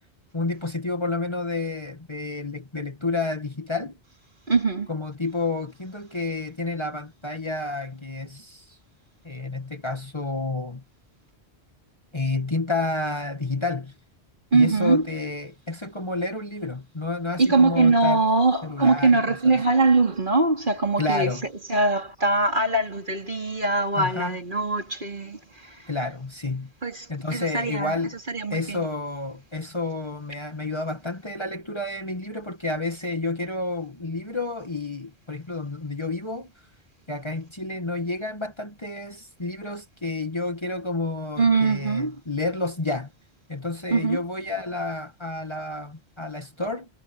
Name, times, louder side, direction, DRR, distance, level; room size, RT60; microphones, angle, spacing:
voice 1, 0.3-4.0 4.9-8.8 9.2-10.8 12.1-13.9 14.5-18.2 18.6-19.6 21.0-21.5 24.0-24.4 25.9-26.7 27.1-28.2 28.5-36.5 37.1-43.1 43.5-46.9, left 3 dB, 25° left, 1.9 m, -30 dB
voice 2, 4.5-4.9 14.5-15.0 17.4-21.3 21.7-25.9 26.8-28.0 28.3-28.9 41.4-42.2 43.9-44.2, right 3 dB, 50° right, 3.4 m, -22 dB
omnidirectional pair, 1.1 m